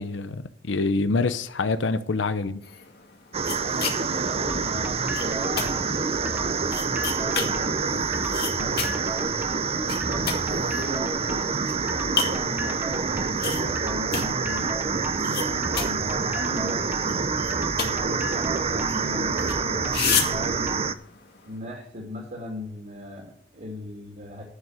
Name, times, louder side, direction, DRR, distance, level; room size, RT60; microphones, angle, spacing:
voice 1, 0.0-2.6, left 3 dB, 80° left, 0.7 m, -26 dB
sound 1, 2.6-21.6, left 7 dB, 60° left, 2.1 m, -35 dB
sound 2, 3.3-20.9, right 5 dB, 35° right, 0.6 m, -27 dB
voice 2, 3.6-6.7 7.0-9.4 10.0-11.4 11.8-14.7 15.2-17.3 17.8-20.9 21.5-24.4, equal, 50° right, 3.0 m, -37 dB
sound 3, 4.5-20.8, right 1 dB, 10° right, 1.1 m, -36 dB
11.5 x 6.2 x 8.2 m
head